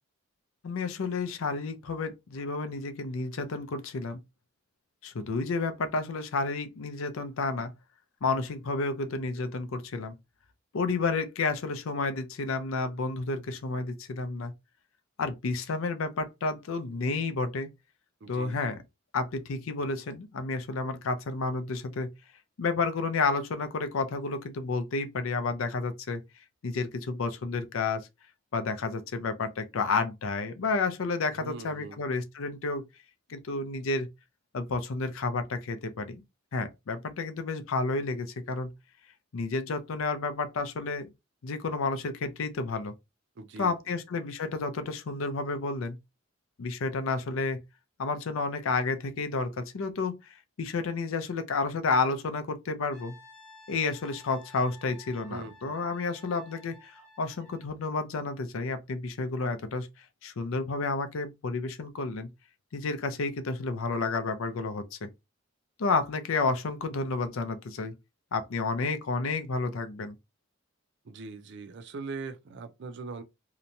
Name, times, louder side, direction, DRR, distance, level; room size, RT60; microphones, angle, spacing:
voice 1, 0.6-4.2 5.0-7.7 8.2-10.1 10.7-14.5 15.2-17.7 18.3-18.8 19.1-22.1 22.6-26.2 26.6-28.1 28.5-32.8 33.3-34.1 34.5-36.2 36.5-38.7 39.3-41.1 41.4-42.9 43.6-46.0 46.6-47.6 48.0-53.1 53.7-59.9 60.2-62.3 62.7-65.1 65.8-67.9 68.3-70.1, left 3 dB, 75° left, 0.5 m, -31 dB
voice 2, 18.2-18.8 31.3-32.0 43.4-44.0 55.3-55.8 71.0-73.2, right 4 dB, 55° right, 0.4 m, -41 dB
Brass instrument, 52.9-57.8, left 2 dB, 5° left, 0.8 m, -54 dB
2.9 x 2.1 x 2.6 m
head